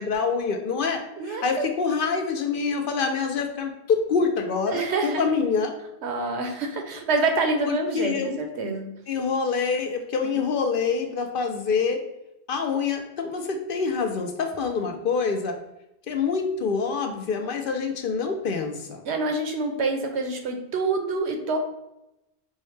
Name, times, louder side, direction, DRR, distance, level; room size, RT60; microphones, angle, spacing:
voice 1, 0.0-5.7 7.6-8.4 9.1-12.0 12.5-15.5 16.1-19.0, left 5 dB, 65° left, 4 dB, 0.7 m, -26 dB
voice 2, 1.2-1.7 4.7-5.3 6.0-8.9 10.2-10.4 19.0-21.6, right 3 dB, 85° right, 4 dB, 1.0 m, -27 dB
5.5 x 2.1 x 3.1 m, 0.88 s
omnidirectional pair, 1.1 m